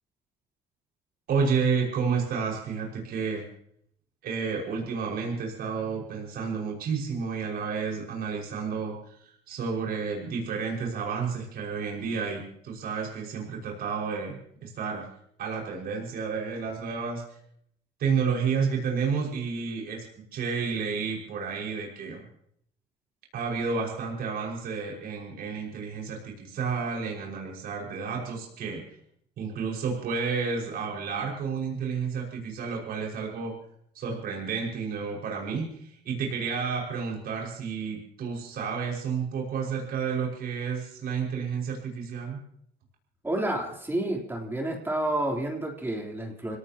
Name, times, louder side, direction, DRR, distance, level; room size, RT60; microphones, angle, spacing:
voice 1, 1.3-3.4 4.2-15.0 15.4-17.4 18.0-20.0 20.3-22.3 23.3-29.0 29.4-33.5 33.9-42.4, right 5 dB, 65° right, -1 dB, 5.7 m, -31 dB
voice 2, 43.2-46.6, right 1 dB, 15° right, 0 dB, 3.5 m, -30 dB
27.0 x 18.0 x 3.0 m, 0.68 s
cardioid pair, 110°, 17 cm